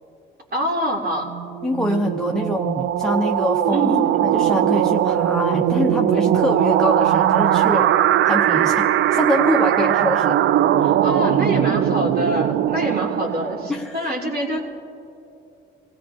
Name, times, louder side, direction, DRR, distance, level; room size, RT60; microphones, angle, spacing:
voice 1, 0.5-1.3 3.7-4.0 11.0-14.7, equal, 50° right, -1 dB, 3.4 m, -25 dB
sound 1, 1.3-13.9, right 11 dB, 70° right, 0.4 m, -20 dB
voice 2, 1.6-3.9 4.2-7.9 8.2-10.4 10.8-11.0 13.7-14.0, left 1 dB, 5° left, 4 dB, 0.7 m, -24 dB
27.5 x 17.5 x 2.9 m, 2.8 s
cardioid pair, 90°, 20 cm